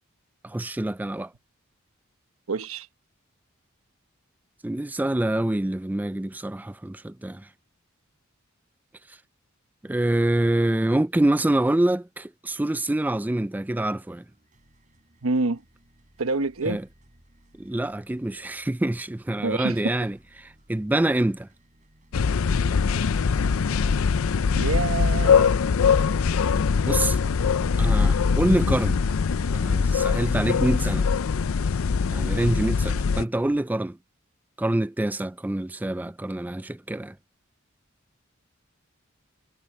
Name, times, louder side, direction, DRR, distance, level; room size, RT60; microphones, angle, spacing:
voice 1, 0.4-1.3 4.6-7.5 9.8-14.2 16.6-16.8 17.6-20.2 20.7-21.5 26.9-27.2 27.8-29.0 29.5-31.1 32.1-34.0 34.6-37.1, right 1 dB, 10° right, 0.3 m, -26 dB
voice 2, 2.5-2.9 15.2-15.6 16.2-16.8 19.4-20.0 24.5-25.8, right 3 dB, 90° right, 1.1 m, -27 dB
sound 1, 13.8-33.6, right 1 dB, 35° right, 6.5 m, -60 dB
sound 2, 22.1-33.2, left 5 dB, 80° left, 0.5 m, -22 dB
head